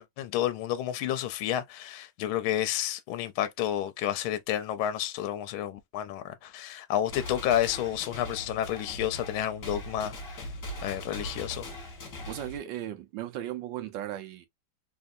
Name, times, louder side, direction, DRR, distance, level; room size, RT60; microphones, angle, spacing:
voice 1, 0.0-10.4 10.8-11.7, left 11 dB, 75° left, 1.3 m, -30 dB
sound 1, 7.0-12.6, left 1 dB, 40° left, 1.5 m, -40 dB
voice 2, 12.3-14.5, right 12 dB, 70° right, 1.3 m, -36 dB
3.5 x 2.7 x 2.4 m
omnidirectional pair, 2.4 m